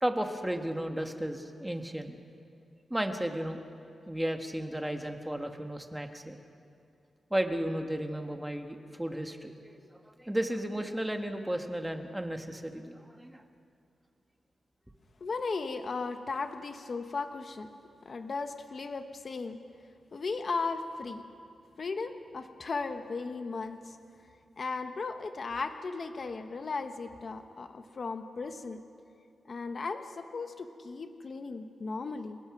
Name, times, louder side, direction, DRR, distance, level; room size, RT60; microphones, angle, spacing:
voice 1, 0.0-2.1 2.9-3.6 4.1-6.4 7.3-13.4, right 1 dB, 5° right, 5 dB, 1.2 m, -34 dB
voice 2, 15.2-17.7 18.0-19.6 20.1-21.2 21.8-24.0 24.6-28.8 29.5-32.4, left 4 dB, 40° left, 7 dB, 1.0 m, -36 dB
30.0 x 17.5 x 5.9 m, 2.5 s
wide cardioid pair, 175°, 0 cm